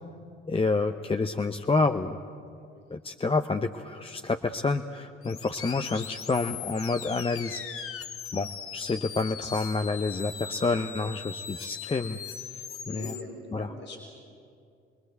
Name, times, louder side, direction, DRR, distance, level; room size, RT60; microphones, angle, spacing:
voice 1, 0.5-2.2 2.9-7.6 8.3-12.2 12.5-13.1 13.5-13.7, left 3 dB, 20° left, 7 dB, 0.9 m, -28 dB
voice 2, 2.6-2.9 5.9-6.0 9.4-9.6 12.8-14.0, left 3 dB, 80° left, -6 dB, 4.0 m, -43 dB
sound 1, 5.2-13.2, left 7 dB, 50° left, 1.5 m, -40 dB
29.0 x 21.0 x 8.1 m, 2.4 s
figure-of-eight pair, 50°, 29 cm